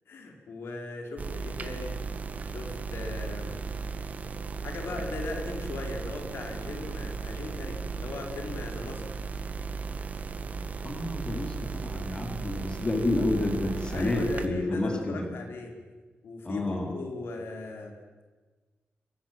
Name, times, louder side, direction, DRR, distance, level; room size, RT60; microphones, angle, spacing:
voice 1, 0.1-2.0 2.5-3.6 4.6-9.0 13.9-15.7 16.2-17.9, left 3 dB, 75° left, 2 dB, 5.2 m, -38 dB
sound 1, 1.2-14.5, right 5 dB, 40° right, 1.9 m, -36 dB
voice 2, 10.8-15.3 16.4-16.9, left 2 dB, 25° left, 2 dB, 4.3 m, -29 dB
27.5 x 23.5 x 7.7 m, 1.3 s
wide cardioid pair, 170°, 4 cm